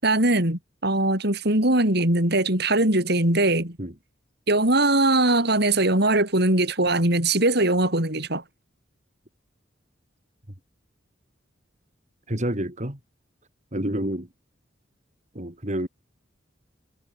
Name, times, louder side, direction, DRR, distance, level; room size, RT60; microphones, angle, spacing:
voice 1, 0.0-3.8 4.5-8.4, right 2 dB, 60° right, 7.6 m, -21 dB
voice 2, 12.3-13.0 13.7-14.3 15.3-15.9, right 1 dB, 40° right, 4.9 m, -28 dB
head